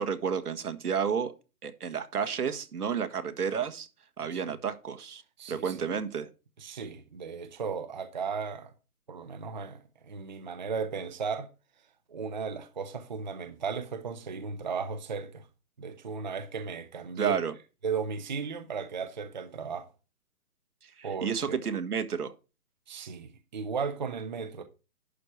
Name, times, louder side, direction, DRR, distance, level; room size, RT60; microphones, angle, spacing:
voice 1, 0.0-1.3 1.6-3.9 4.2-5.2 5.5-6.3 17.2-17.5 20.8-22.3, right 7 dB, 80° right, 1.7 m, -31 dB
voice 2, 5.4-5.8 6.6-8.7 9.1-11.5 12.1-15.5 15.8-17.4 17.8-19.9 21.0-21.6 22.9-24.6, right 5 dB, 30° right, 0.7 m, -35 dB
11.0 x 4.7 x 5.7 m
hypercardioid pair, 170°, 45 cm